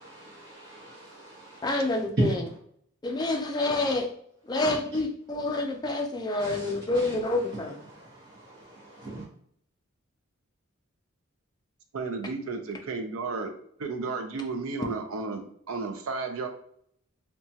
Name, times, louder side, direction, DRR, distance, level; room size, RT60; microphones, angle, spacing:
voice 1, 0.0-1.6 6.4-6.7 8.5-9.2, right 2 dB, 50° right, -8 dB, 0.9 m, -45 dB
voice 2, 1.6-2.5 3.0-4.1 4.4-7.8, left 2 dB, 20° left, 2 dB, 0.3 m, -28 dB
voice 3, 11.9-13.5 13.8-16.5, right 4 dB, 80° right, 6 dB, 0.4 m, -33 dB
2.8 x 2.2 x 2.7 m, 0.64 s
head